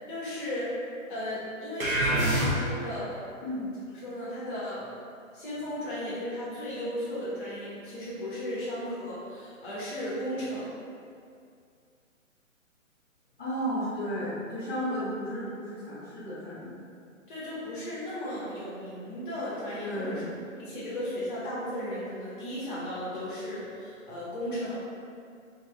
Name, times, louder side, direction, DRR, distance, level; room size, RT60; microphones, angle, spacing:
voice 1, 0.1-0.7 1.1-3.2 4.0-4.9 5.3-10.7 17.3-20.2 20.6-24.7, left 1 dB, 40° left, -8 dB, 1.4 m, -35 dB
sound 1, 1.8-3.0, right 1 dB, 80° right, 1.0 m, -26 dB
voice 2, 13.4-16.7 19.8-20.3, equal, 5° left, -24 dB, 0.5 m, -33 dB
4.2 x 3.3 x 2.3 m, 2.3 s
figure-of-eight pair, 135°, 41 cm